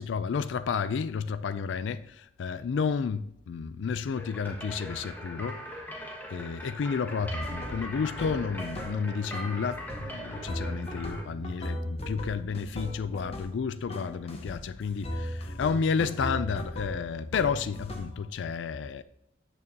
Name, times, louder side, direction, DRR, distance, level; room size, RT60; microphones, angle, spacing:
voice 1, 0.0-5.6 6.3-19.0, left 5 dB, 90° left, 0.4 m, -31 dB
sound 1, 4.2-11.2, equal, 10° left, 1.2 m, -41 dB
Laidback Steps, 7.2-9.1 9.3-13.6 13.9-14.6 15.0-18.2, equal, 35° left, 1.2 m, -38 dB
8.6 x 6.7 x 2.8 m
head